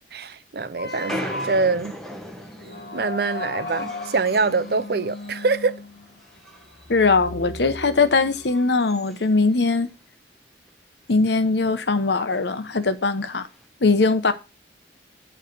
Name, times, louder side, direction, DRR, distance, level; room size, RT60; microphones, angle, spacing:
voice 1, 0.1-1.9 2.9-5.8, right 4 dB, 60° right, 0.6 m, -24 dB
sound 1, 0.7-8.5, left 2 dB, 55° left, 1.5 m, -36 dB
sound 2, 0.9-5.7 6.0-7.0 7.3-7.5 8.1-10.0 10.4-10.5 10.7-10.8 11.1-11.5 12.3-12.5 13.3-13.7, equal, ahead, 1.1 m, -39 dB
voice 2, 6.9-9.9 11.1-13.5 13.8-14.3, left 3 dB, 75° left, 0.9 m, -20 dB
9.5 x 3.3 x 6.6 m
head